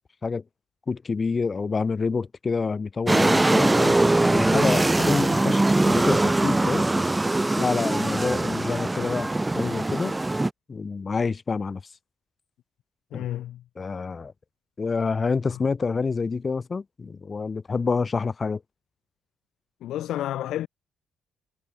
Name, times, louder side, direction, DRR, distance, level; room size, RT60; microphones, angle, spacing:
voice 1, 0.9-4.0 4.3-6.9 7.5-10.1 10.7-11.8 13.1-13.3 13.8-14.3 14.8-18.6, left 4 dB, 35° left, 5.9 m, -27 dB
sound 1, 3.1-10.5, right 2 dB, 15° right, 1.1 m, -22 dB
voice 2, 13.1-13.6 15.5-15.6 19.8-20.7, left 13 dB, 80° left, 1.4 m, -30 dB
cardioid pair, 90°, 0 cm